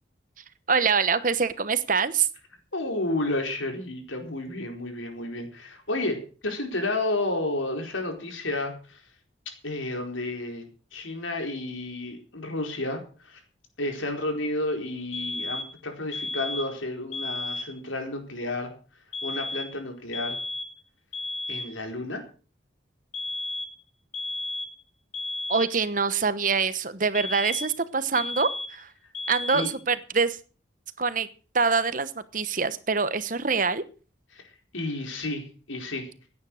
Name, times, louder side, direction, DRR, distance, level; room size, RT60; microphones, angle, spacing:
voice 1, 0.7-2.3 25.5-28.9 29.3-30.4 31.0-31.3 31.5-33.8, right 5 dB, 45° right, 14 dB, 1.1 m, -25 dB
voice 2, 2.7-9.0 9.6-10.7 10.9-13.4 13.8-18.7 19.2-20.4 21.5-22.2 29.5-29.7 34.3-36.1, left 2 dB, 85° left, 4 dB, 4.5 m, -31 dB
sound 1, 15.1-15.8 16.1-16.8 17.1-17.8 19.1-19.8 20.1-20.8 21.1-21.8 23.1-23.8 24.1-24.8 25.1-25.8 27.1-27.8 28.1-28.8 29.1-29.8, left 2 dB, 35° left, 1.5 m, -33 dB
16.5 x 9.6 x 6.5 m, 0.38 s
head